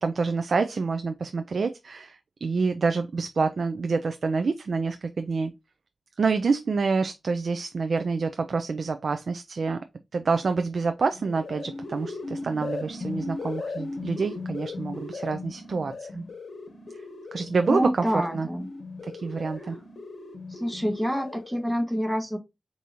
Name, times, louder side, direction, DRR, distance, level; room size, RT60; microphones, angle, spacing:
voice 1, 0.0-5.5 6.2-9.8 10.1-16.2 17.3-18.5 19.0-19.8, right 4 dB, 70° right, 0.4 m, -27 dB
sound 1, 11.1-21.6, left 3 dB, 75° left, 0.9 m, -37 dB
voice 2, 17.7-18.7 20.5-22.4, equal, 5° right, 1.1 m, -27 dB
4.8 x 2.7 x 2.8 m
wide cardioid pair, 70°, 0 cm